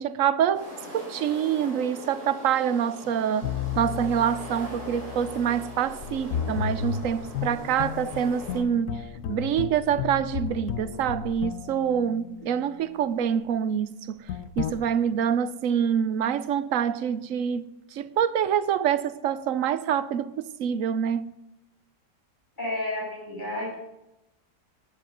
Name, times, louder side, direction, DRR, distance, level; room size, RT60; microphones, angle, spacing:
voice 1, 0.0-9.0 9.3-14.2 14.6-17.6 17.9-21.3, right 8 dB, 55° right, 1.0 m, -26 dB
sound 1, 0.5-8.6, left 1 dB, 20° right, 7.8 m, -42 dB
sound 2, 3.4-12.8 14.3-14.7, left 8 dB, 65° left, 1.2 m, -34 dB
voice 2, 22.6-23.8, left 1 dB, 25° left, 6.8 m, -31 dB
18.0 x 8.7 x 8.0 m
omnidirectional pair, 1.9 m